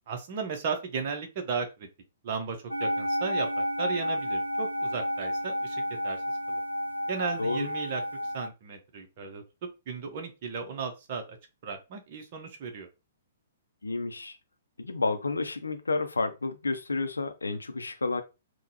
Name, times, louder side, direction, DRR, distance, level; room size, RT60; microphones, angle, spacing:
voice 1, 0.1-1.9 2.2-6.2 6.5-6.6 7.1-8.0 8.3-9.4 9.9-11.4 11.6-12.9, right 5 dB, 40° right, 0.8 m, -35 dB
sound 1, 2.7-8.5, equal, 80° right, 0.4 m, -31 dB
voice 2, 13.8-14.4 14.8-18.2, left 3 dB, 75° left, 0.6 m, -30 dB
3.7 x 2.3 x 2.8 m
figure-of-eight pair, 115°, 0 cm